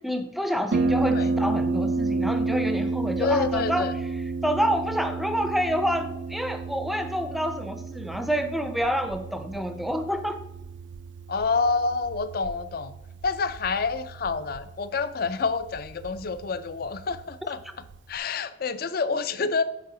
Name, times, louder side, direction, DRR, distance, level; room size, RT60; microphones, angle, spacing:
voice 1, 0.0-3.9 4.2-10.4, equal, ahead, 8 dB, 0.5 m, -28 dB
Harp, 0.7-18.2, right 3 dB, 70° right, 0.5 m, -31 dB
voice 2, 3.2-3.9 11.3-12.9 13.2-17.6 18.1-19.6, left 4 dB, 50° left, 13 dB, 0.4 m, -27 dB
8.2 x 4.8 x 3.8 m, 0.90 s
head